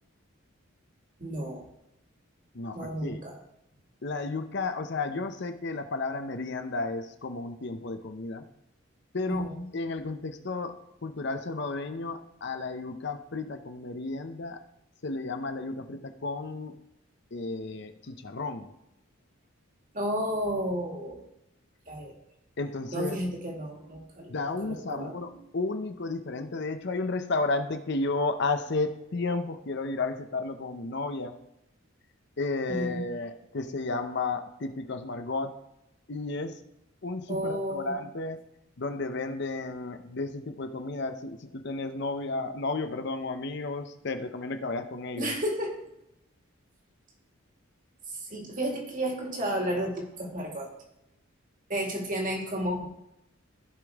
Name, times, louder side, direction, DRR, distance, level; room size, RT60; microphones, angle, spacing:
voice 1, 1.2-1.7 2.7-3.3 9.3-9.6 19.9-21.2 21.9-22.1 22.9-24.3 24.6-25.2 32.7-33.0 37.3-37.9 45.2-45.8 48.2-50.7 51.7-52.9, equal, 40° right, 1 dB, 2.2 m, -32 dB
voice 2, 2.5-3.2 4.0-8.4 9.1-9.5 9.7-14.6 15.0-16.8 17.3-18.7 22.6-23.2 24.3-31.3 32.4-35.5 36.1-36.6 37.0-38.4 38.8-45.3, left 3 dB, 55° left, 7 dB, 0.7 m, -33 dB
15.5 x 5.2 x 3.5 m, 0.84 s
head